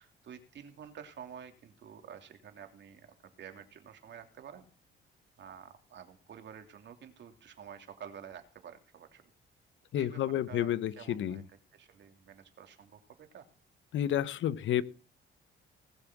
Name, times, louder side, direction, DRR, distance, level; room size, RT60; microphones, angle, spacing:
voice 1, 0.0-4.7 5.4-9.3 9.9-10.2 10.5-13.5, right 8 dB, 65° right, 6 dB, 2.9 m, -50 dB
voice 2, 9.9-11.4 13.9-14.8, left 11 dB, 75° left, 16 dB, 1.0 m, -30 dB
20.0 x 7.3 x 6.1 m, 0.36 s
cardioid pair, 90°, 20 cm